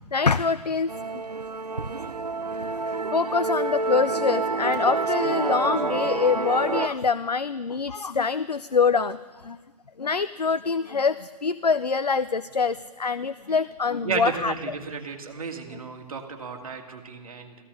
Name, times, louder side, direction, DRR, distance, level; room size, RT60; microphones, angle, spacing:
voice 1, 0.1-0.9 3.1-9.6 10.0-14.5, left 5 dB, 90° left, 16 dB, 0.5 m, -25 dB
Musical instrument, 0.9-6.9, right 3 dB, 85° right, 0.8 m, -28 dB
voice 2, 14.0-17.6, right 5 dB, 60° right, 4 dB, 2.2 m, -33 dB
15.5 x 14.0 x 6.3 m, 1.4 s
figure-of-eight pair, 125°, 20 cm